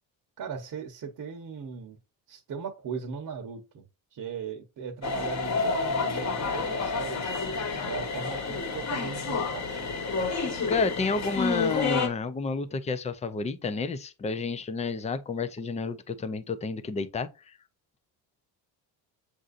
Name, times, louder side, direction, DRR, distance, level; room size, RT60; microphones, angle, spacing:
voice 1, 0.4-2.0 2.3-3.8 4.1-7.3 7.8-10.0 11.0-11.1, right 6 dB, 50° right, 0.9 m, -38 dB
sound 1, 5.0-12.1, left 4 dB, 35° left, 1.2 m, -29 dB
voice 2, 10.7-17.3, left 4 dB, 15° left, 0.4 m, -30 dB
7.5 x 2.6 x 2.5 m
cardioid pair, 110°, 44 cm